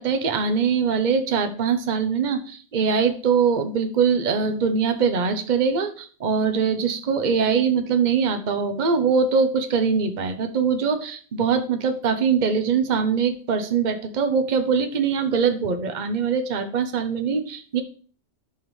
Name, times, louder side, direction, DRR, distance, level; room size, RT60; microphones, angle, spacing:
voice 1, 0.0-17.8, right 6 dB, 40° right, 7 dB, 0.9 m, -22 dB
14.5 x 5.3 x 3.2 m, 0.43 s
omnidirectional pair, 1.3 m